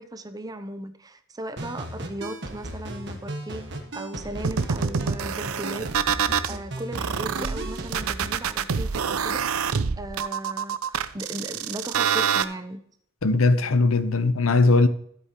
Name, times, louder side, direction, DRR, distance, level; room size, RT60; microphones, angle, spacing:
voice 1, 0.0-5.9 6.5-12.8, right 1 dB, 15° right, 0.7 m, -37 dB
sound 1, 1.6-8.4, right 1 dB, 55° right, 1.6 m, -36 dB
sound 2, 4.4-6.5 6.9-12.4, right 7 dB, 90° right, 0.6 m, -26 dB
voice 2, 13.2-14.9, left 3 dB, 80° left, 0.8 m, -19 dB
13.5 x 8.1 x 3.0 m
head